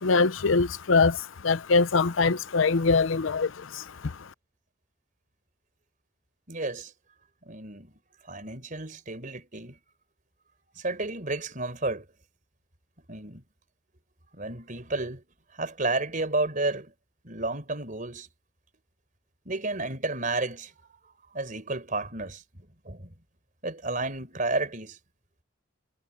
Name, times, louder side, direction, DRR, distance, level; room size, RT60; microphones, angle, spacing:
voice 1, 0.0-1.2 1.4-3.8, left 4 dB, 85° left, 0.7 m, -23 dB
voice 2, 6.5-6.9 7.4-7.9 8.3-9.8 10.8-12.1 13.1-13.4 14.3-15.2 15.6-16.9 17.2-18.3 19.5-20.7 21.3-22.4 22.8-23.1 23.6-25.0, right 2 dB, 40° right, 4.4 m, -31 dB
head